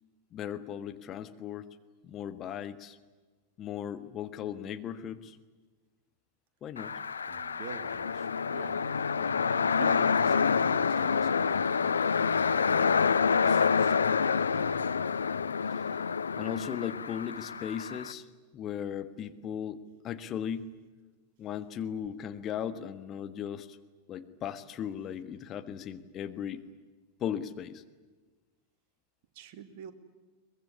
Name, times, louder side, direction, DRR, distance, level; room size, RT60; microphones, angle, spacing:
voice 1, 0.3-1.6 2.0-3.0 3.6-5.4 6.6-7.0 15.7-15.9 16.4-18.3 18.5-20.6 21.4-23.8 24.1-26.6 27.2-27.8, left 9 dB, 30° left, 10 dB, 1.5 m, -37 dB
sound 1, 6.8-18.1, left 6 dB, 70° left, 0.7 m, -27 dB
voice 2, 7.3-11.8 12.2-14.8 29.3-29.9, right 7 dB, 45° right, 9 dB, 2.5 m, -47 dB
23.5 x 21.0 x 9.8 m, 1.3 s
figure-of-eight pair, 90°, 0 cm